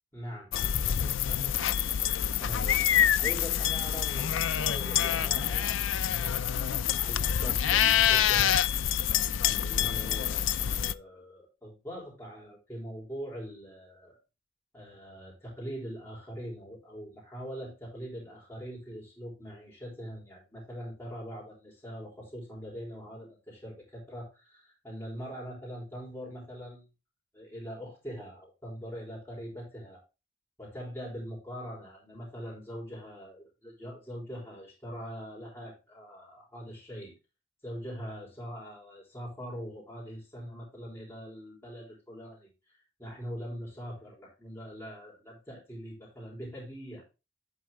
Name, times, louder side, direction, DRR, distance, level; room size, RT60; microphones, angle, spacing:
voice 1, 0.1-1.5 2.4-6.5 6.9-8.6 9.0-9.2 9.4-14.2 14.7-26.8 27.3-30.0 30.6-37.1 37.6-47.0, equal, 15° left, -5 dB, 3.6 m, -42 dB
sound 1, 0.5-10.9, left 10 dB, 80° left, 0.4 m, -26 dB
10.5 x 4.5 x 3.6 m, 0.27 s
head